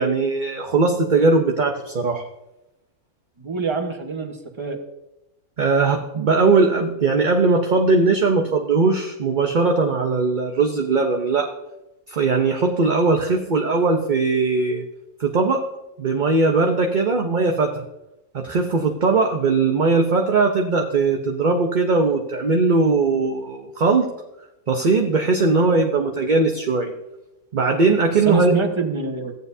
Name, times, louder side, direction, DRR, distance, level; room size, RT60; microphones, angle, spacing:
voice 1, 0.0-2.2 5.6-11.5 12.1-14.8 15.2-15.7 16.0-17.7 18.3-24.1 24.7-26.9 27.5-28.5, right 3 dB, 40° right, 3 dB, 0.8 m, -19 dB
voice 2, 3.4-4.8 28.2-29.4, right 4 dB, 20° right, 4 dB, 1.1 m, -25 dB
15.0 x 9.4 x 2.7 m, 0.93 s
omnidirectional pair, 1.5 m